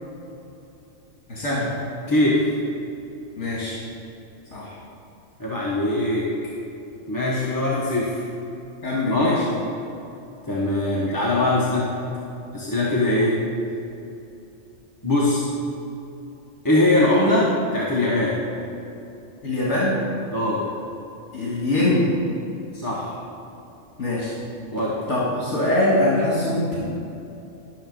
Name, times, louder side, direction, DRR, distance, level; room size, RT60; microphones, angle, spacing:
voice 1, 1.3-1.7 3.4-3.8 4.5-4.8 8.8-9.5 11.1-11.2 19.4-20.0 21.3-22.1 24.0-24.3 25.1-26.9, left 1 dB, 65° left, -7 dB, 2.2 m, -23 dB
voice 2, 2.1-2.5 5.4-6.3 7.1-8.2 9.1-9.4 10.5-12.2 12.5-13.4 15.0-15.5 16.6-18.4 20.3-20.6 22.7-23.2 24.7-25.0, left 1 dB, 15° left, -7 dB, 1.1 m, -21 dB
12.0 x 6.5 x 5.3 m, 2.9 s
omnidirectional pair, 1.3 m